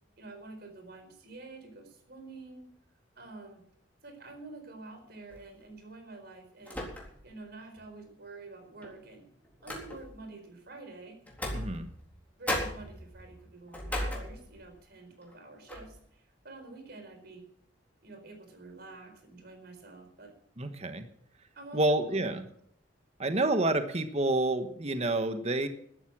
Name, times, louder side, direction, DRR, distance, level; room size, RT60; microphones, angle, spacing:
voice 1, 0.2-2.7 3.2-3.6 4.0-6.9 7.2-9.2 9.6-11.2 12.4-17.5 18.0-20.3 21.5-22.4, right 3 dB, 55° right, 6 dB, 4.5 m, -48 dB
sound 1, 5.3-5.6 6.7-7.4 7.8-7.9 8.8-10.3 11.3-12.2 12.5-14.8 15.2-15.4 15.7-16.0, left 1 dB, 10° left, 3.9 m, -37 dB
voice 2, 11.5-11.9 20.6-21.0 21.7-22.4 23.2-25.7, right 2 dB, 35° right, 8 dB, 1.3 m, -28 dB
13.5 x 12.5 x 6.1 m, 0.67 s
head